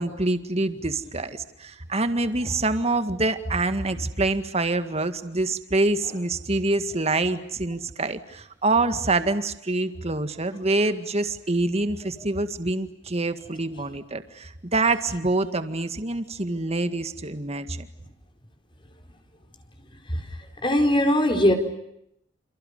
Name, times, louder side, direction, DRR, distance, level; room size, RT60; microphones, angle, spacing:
voice 1, 0.0-17.9, right 2 dB, 35° right, 10 dB, 1.9 m, -26 dB
voice 2, 20.6-21.5, left 1 dB, 25° left, 5 dB, 4.6 m, -19 dB
29.0 x 29.0 x 6.7 m, 0.76 s
head